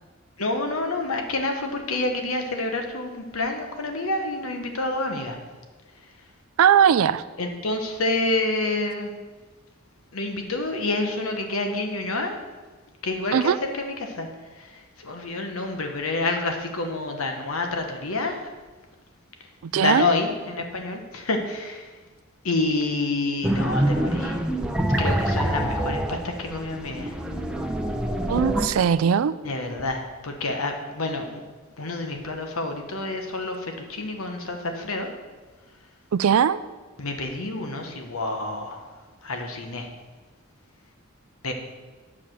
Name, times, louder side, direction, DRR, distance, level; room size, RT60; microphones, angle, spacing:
voice 1, 0.4-5.4 7.4-9.1 10.1-12.4 13.0-14.3 14.6-18.4 19.7-21.9 22.4-24.4 25.0-27.1 29.4-31.4 31.8-35.1 37.0-38.9 39.2-39.9 41.4-41.5, left 2 dB, 75° left, 4 dB, 1.2 m, -28 dB
voice 2, 6.6-7.2 13.3-13.6 19.6-20.1 28.3-29.3 36.1-36.6, right 8 dB, 75° right, 16 dB, 0.4 m, -19 dB
sound 1, 23.4-28.7, right 1 dB, 5° right, 0.6 m, -25 dB
8.6 x 4.9 x 7.4 m, 1.3 s
head